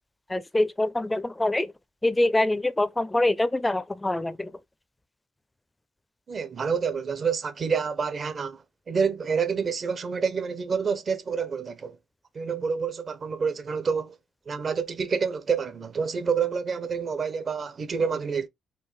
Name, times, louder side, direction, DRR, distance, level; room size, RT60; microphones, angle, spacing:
voice 1, 0.3-1.7 2.0-4.5, left 1 dB, 15° left, 0.4 m, -25 dB
voice 2, 6.3-12.0 12.3-14.1 14.5-18.5, right 6 dB, 45° right, 0.7 m, -28 dB
4.5 x 2.6 x 3.1 m
cardioid pair, 90°, 0 cm